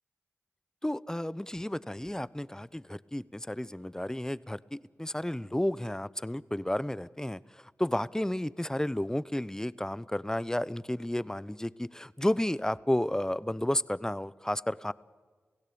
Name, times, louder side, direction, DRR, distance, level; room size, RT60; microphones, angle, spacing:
voice 1, 0.8-7.4 7.8-14.9, left 1 dB, 10° left, 18 dB, 0.8 m, -32 dB
30.0 x 16.5 x 8.6 m, 1.4 s
cardioid pair, 45°, 5 cm